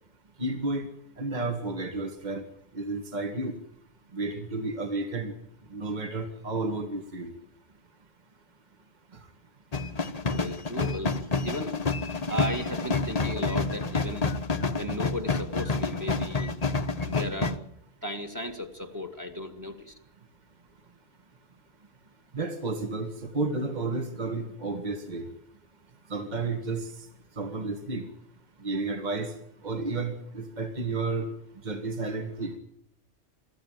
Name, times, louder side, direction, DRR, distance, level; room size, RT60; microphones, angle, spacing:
voice 1, 0.4-0.9 1.2-2.4 2.7-3.5 4.1-5.3 5.7-7.3 22.3-25.3 26.1-27.1 27.4-28.1 28.6-29.3 29.6-31.3 31.6-32.5, right 3 dB, 35° right, 5 dB, 2.0 m, -31 dB
sound 1, 9.7-17.6, left 3 dB, 35° left, 1.1 m, -29 dB
voice 2, 10.3-11.2 11.4-11.8 12.3-14.3 14.8-16.5 17.1-17.6 18.0-20.0, left 1 dB, 15° right, 7 dB, 2.0 m, -35 dB
25.0 x 14.0 x 9.3 m, 0.75 s
omnidirectional pair, 1.3 m